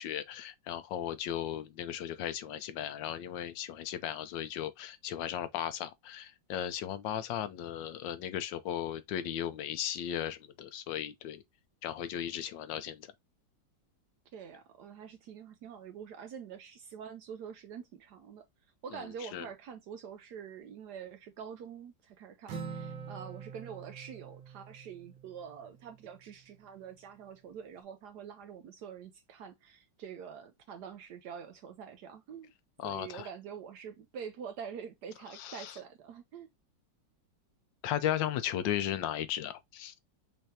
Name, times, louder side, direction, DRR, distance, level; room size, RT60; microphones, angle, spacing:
voice 1, 0.0-11.4 11.8-13.1 18.9-19.5 32.8-33.3 35.3-35.8 37.8-39.9, left 11 dB, 85° left, 1.4 m, -36 dB
voice 2, 14.3-18.4 18.8-32.5 32.8-36.5, right 7 dB, 70° right, 1.1 m, -46 dB
Acoustic guitar, 22.5-26.1, right 6 dB, 90° right, 1.9 m, -45 dB
5.6 x 3.4 x 2.7 m
omnidirectional pair, 2.0 m